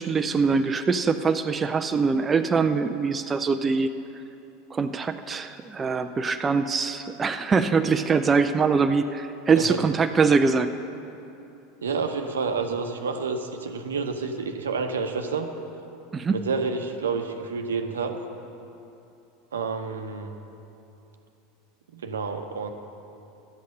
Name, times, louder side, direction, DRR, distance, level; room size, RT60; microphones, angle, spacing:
voice 1, 0.0-3.9 4.7-10.7 16.1-16.4, right 5 dB, 20° right, 8 dB, 0.5 m, -23 dB
voice 2, 11.8-15.5 16.3-18.2 19.5-20.3 21.9-22.7, right 4 dB, 75° right, 6 dB, 0.9 m, -29 dB
12.5 x 8.3 x 6.4 m, 2.8 s
figure-of-eight pair, 80°, 0 cm